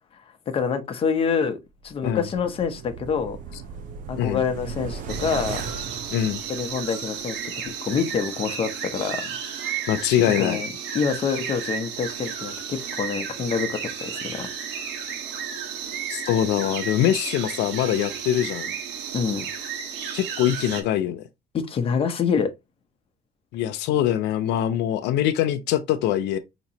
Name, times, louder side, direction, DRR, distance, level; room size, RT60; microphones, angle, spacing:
voice 1, 0.5-1.6 1.8-3.4 4.1-5.6 6.5-9.4 9.8-9.9 10.4-10.7 10.9-14.5 19.1-19.5 21.5-22.5, left 6 dB, 35° left, 0.8 m, -26 dB
sound 1, 1.8-7.1 7.4-7.5, right 5 dB, 50° right, 0.6 m, -37 dB
sound 2, 5.1-20.8, right 7 dB, 80° right, 1.2 m, -33 dB
voice 2, 9.9-10.6 16.1-18.8 20.1-21.2 23.5-26.4, left 11 dB, 90° left, 0.6 m, -23 dB
5.0 x 3.0 x 2.8 m
cardioid pair, 150°, 17 cm